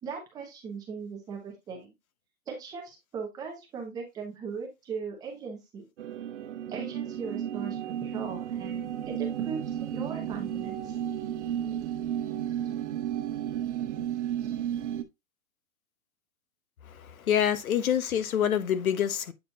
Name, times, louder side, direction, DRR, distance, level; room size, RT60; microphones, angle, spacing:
voice 1, 0.0-1.9 2.5-5.9 6.7-11.0, right 5 dB, 10° right, 0.9 m, -39 dB
sound 1, 6.0-15.0, right 10 dB, 55° right, 1.1 m, -33 dB
voice 2, 16.9-19.3, left 9 dB, 80° left, 1.1 m, -26 dB
8.3 x 4.1 x 2.8 m
hypercardioid pair, 165°, 42 cm